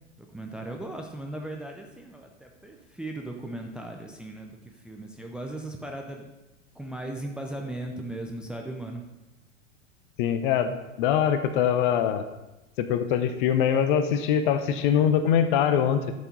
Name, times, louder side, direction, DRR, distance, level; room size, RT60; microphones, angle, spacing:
voice 1, 0.2-6.3 6.7-9.0, right 1 dB, ahead, 2 dB, 0.6 m, -37 dB
voice 2, 10.2-10.7 11.0-12.3 12.8-16.1, left 8 dB, 40° left, 10 dB, 0.8 m, -23 dB
11.5 x 6.8 x 3.9 m, 0.97 s
figure-of-eight pair, 90°, 38 cm